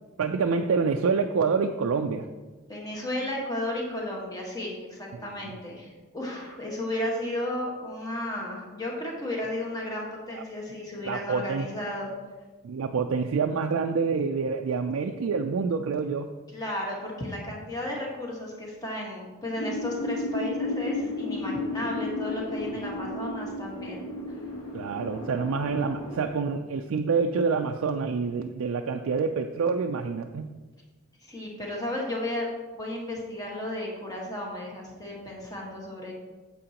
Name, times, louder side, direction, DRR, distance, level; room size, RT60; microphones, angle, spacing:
voice 1, 0.2-2.3 5.1-5.5 10.3-10.4 11.0-11.7 12.6-16.3 24.7-30.6, right 5 dB, 70° right, 4 dB, 0.4 m, -27 dB
voice 2, 2.7-12.1 16.5-24.4 31.2-32.5 32.7-36.1, left 1 dB, 15° left, -2 dB, 1.4 m, -34 dB
sound 1, 19.6-26.2, left 2 dB, 75° left, 1.3 m, -33 dB
8.9 x 7.6 x 2.9 m, 1.3 s
head